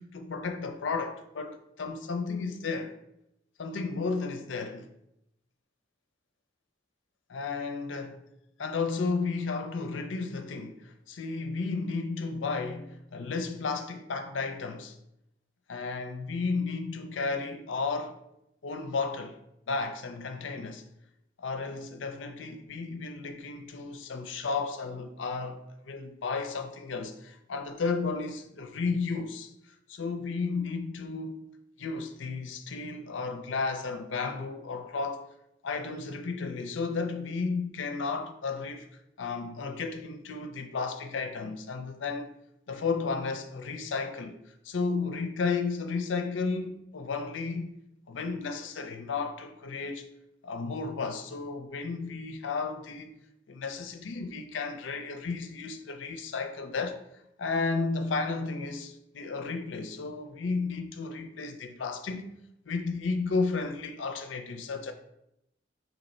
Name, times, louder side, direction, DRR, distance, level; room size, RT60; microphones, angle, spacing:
voice 1, 0.0-3.0 3.6-4.9 7.3-8.2 8.6-15.0 15.7-18.2 18.6-19.4 19.7-20.8 21.4-31.4 31.8-35.3 35.6-38.9 39.2-42.3 42.7-47.7 48.1-50.1 50.4-53.1 53.5-57.0 57.4-62.2 62.7-64.9, left 4 dB, 80° left, 0.5 m, -33 dB
4.1 x 2.9 x 4.3 m
head